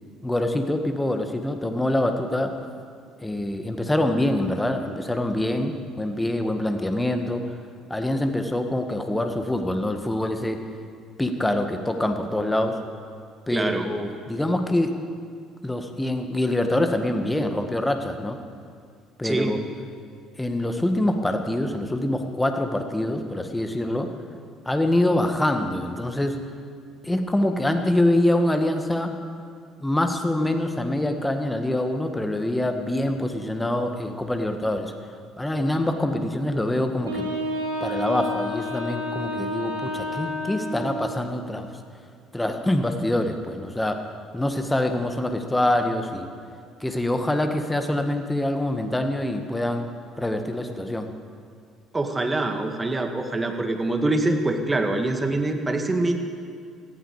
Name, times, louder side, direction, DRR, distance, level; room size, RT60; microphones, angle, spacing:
voice 1, 0.2-2.5 3.2-7.4 7.9-10.6 11.2-12.8 13.5-14.9 15.6-18.4 19.2-19.6 20.4-24.1 24.7-26.4 27.0-29.1 29.8-34.9 35.4-37.3 37.8-41.7 42.3-44.0 44.3-46.3 46.8-49.9 50.2-51.1, left 1 dB, 10° left, 6 dB, 1.7 m, -25 dB
voice 2, 13.5-13.9 19.2-19.5 51.9-56.2, right 2 dB, 20° right, 4 dB, 2.0 m, -24 dB
Wind instrument woodwind instrument, 37.0-41.1, left 1 dB, 85° right, 2.7 m, -30 dB
18.5 x 14.5 x 4.9 m, 2.2 s
figure-of-eight pair, 55°, 0 cm